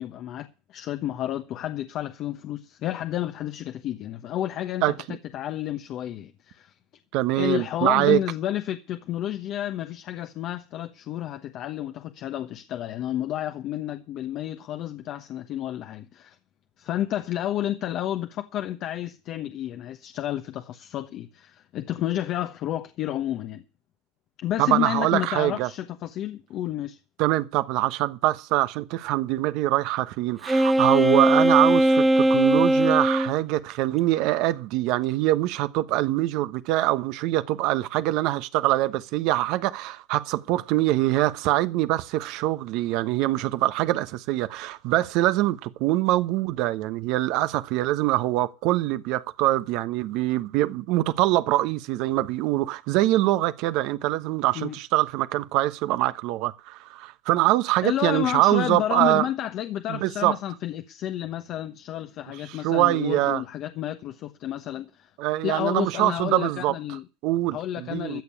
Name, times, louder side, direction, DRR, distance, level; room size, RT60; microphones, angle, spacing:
voice 1, 0.0-5.0 5.3-6.7 7.4-16.4 16.8-23.6 24.4-27.0 54.5-54.7 57.8-65.1 65.4-67.0 67.5-68.2, left 12 dB, 50° left, 1.1 m, -31 dB
voice 2, 4.8-5.2 7.1-8.2 24.6-25.7 27.2-59.3 59.9-60.4 62.5-63.4 65.2-66.7 67.2-68.2, right 16 dB, 65° right, 1.1 m, -24 dB
Wind instrument woodwind instrument, 30.5-33.3, right 1 dB, 10° right, 1.0 m, -19 dB
14.0 x 7.0 x 8.5 m
supercardioid pair, 115°, 0 cm